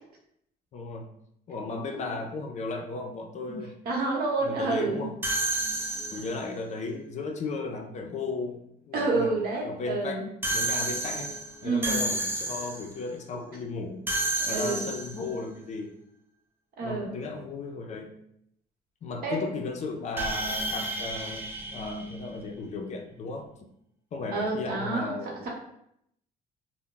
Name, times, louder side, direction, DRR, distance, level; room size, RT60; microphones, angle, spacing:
voice 1, 0.7-1.1 1.5-3.7 4.4-5.2 6.1-10.2 10.5-11.3 11.6-14.1 14.5-16.0 16.8-18.1 19.0-23.5 24.1-25.5, left 3 dB, 45° left, 2 dB, 0.4 m, -35 dB
voice 2, 3.8-5.1 8.9-10.2 11.6-12.0 14.4-14.9 16.8-17.1 19.2-19.5 24.3-25.1, right 3 dB, 65° right, -2 dB, 0.9 m, -28 dB
sound 1, 5.2-6.5 10.4-12.9 14.1-15.3 20.2-22.7, right 2 dB, 10° right, 0.4 m, -31 dB
2.2 x 2.0 x 3.7 m, 0.74 s
cardioid pair, 110°, 17 cm